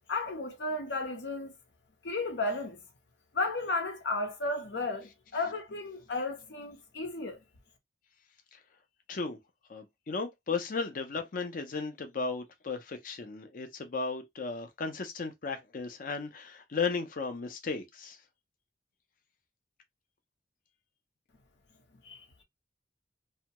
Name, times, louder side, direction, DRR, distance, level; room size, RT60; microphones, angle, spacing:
voice 1, 0.1-1.5 2.0-2.8 3.3-7.4 22.1-22.2, left 2 dB, 85° left, 0.8 m, -33 dB
voice 2, 9.7-18.2, left 4 dB, 50° left, 0.5 m, -35 dB
2.7 x 2.2 x 2.8 m
head